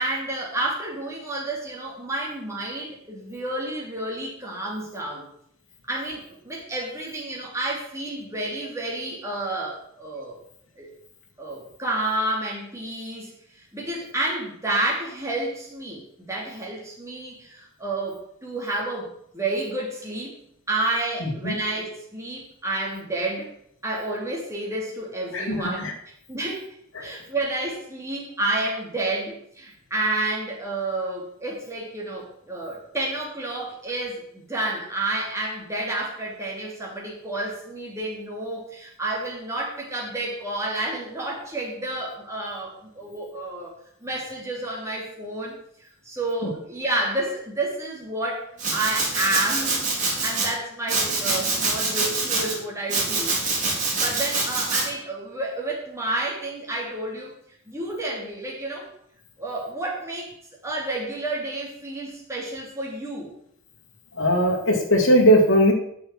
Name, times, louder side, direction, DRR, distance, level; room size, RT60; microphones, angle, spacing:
voice 1, 0.0-5.2 5.9-10.4 10.8-10.9 11.4-16.0 16.3-20.3 20.7-23.5 23.8-25.9 26.3-26.6 27.0-43.7 44.0-45.5 46.0-48.5 48.7-53.4 53.9-57.3 57.7-58.9 59.4-60.3 60.6-63.3, right 2 dB, 15° right, -3 dB, 3.0 m, -30 dB
voice 2, 21.2-21.5 25.3-25.9 26.9-27.1 64.2-65.7, equal, 60° left, -1 dB, 2.9 m, -19 dB
Domestic sounds home sounds, 48.6-50.5 50.9-52.5 52.9-54.8, right 3 dB, 35° right, 3.8 m, -25 dB
9.3 x 6.2 x 7.8 m, 0.70 s
head